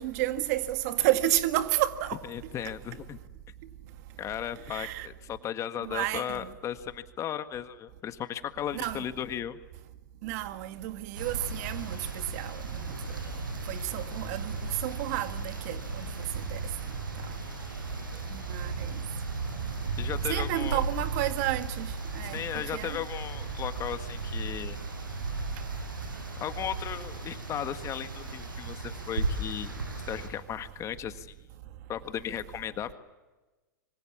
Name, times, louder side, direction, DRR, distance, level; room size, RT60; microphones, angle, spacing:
voice 1, 0.0-2.2 4.7-5.1 5.8-6.4 8.7-9.0 10.2-12.0 12.3-12.6 13.7-14.5 14.8-16.1 16.5-16.6 18.5-18.9 20.3-21.9 22.2-22.4 22.7-23.0, right 15 dB, 50° right, 1.9 m, -30 dB
voice 2, 2.3-3.2 4.2-9.6 18.1-18.2 20.0-20.8 22.3-24.8 26.4-29.7 30.1-31.3 31.9-32.9, left 10 dB, 30° left, 1.6 m, -36 dB
sound 1, 11.1-30.3, right 3 dB, 90° right, 7.3 m, -35 dB
25.5 x 25.0 x 7.3 m
hypercardioid pair, 115°, 11 cm